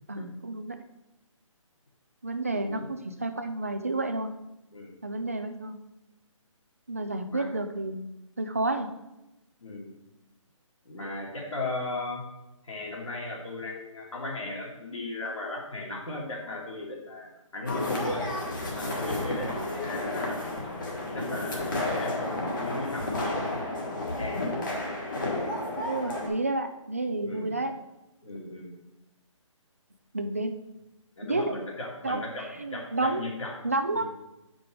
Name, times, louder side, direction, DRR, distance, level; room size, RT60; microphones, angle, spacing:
voice 1, 0.1-0.8 2.2-4.3 5.0-5.8 6.9-8.0 8.4-8.9 25.8-27.7 30.1-30.5 31.2-31.5 32.0-33.2 33.6-34.0, right 2 dB, 25° right, 7 dB, 0.4 m, -30 dB
voice 2, 10.8-12.2 12.6-18.3 18.7-20.6 21.1-24.5 25.3-25.5 27.2-27.5 28.2-28.8 31.2-33.6 33.9-34.0, left 2 dB, 70° left, -2 dB, 2.6 m, -37 dB
sound 1, 17.7-26.3, left 2 dB, 40° left, 1.5 m, -32 dB
7.6 x 5.1 x 4.7 m, 0.93 s
hypercardioid pair, 180°, 17 cm